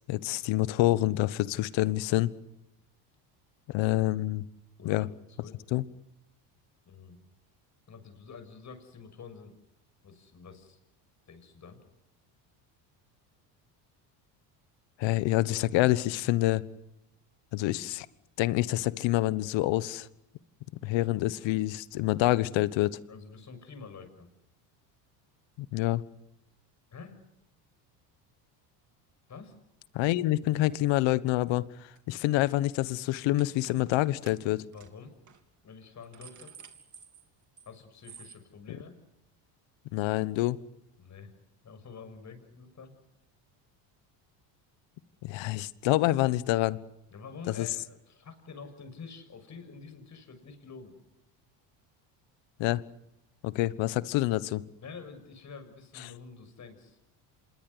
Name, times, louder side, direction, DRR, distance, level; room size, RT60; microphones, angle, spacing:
voice 1, 0.0-2.3 3.7-4.4 4.8-5.1 5.7-5.9 15.0-16.6 17.5-18.1 18.4-20.1 20.8-23.0 25.6-26.0 29.9-31.7 32.1-34.6 39.9-40.6 45.2-46.8 47.6-47.7 52.6-52.8 53.4-54.6, left 17 dB, 65° left, 17 dB, 1.4 m, -27 dB
voice 2, 6.8-7.2 7.9-9.5 10.0-10.8 11.3-11.8 23.1-24.3 26.9-27.2 29.3-29.5 34.7-35.1 35.6-36.5 37.6-38.9 41.0-41.3 41.6-42.9 47.1-51.0 54.8-57.0, left 5 dB, 35° left, 9 dB, 6.8 m, -47 dB
sound 1, 31.9-32.2 32.5-32.7 33.4-34.0 34.3-34.4 34.7-34.9 35.3-35.4 35.8-37.7 38.0-38.4, right 7 dB, 35° right, 3.6 m, -51 dB
26.5 x 21.5 x 8.2 m, 0.88 s
supercardioid pair, 100°, 48 cm